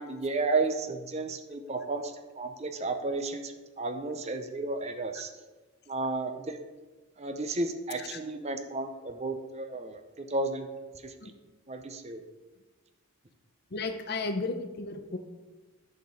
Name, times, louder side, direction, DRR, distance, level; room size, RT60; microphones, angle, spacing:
voice 1, 0.0-5.3 5.9-6.7 7.2-10.7 11.0-11.1 11.7-12.2, right 3 dB, 30° right, 7 dB, 0.6 m, -33 dB
voice 2, 13.7-15.2, left 3 dB, 45° left, 8 dB, 0.7 m, -34 dB
10.0 x 4.3 x 6.3 m, 1.2 s
head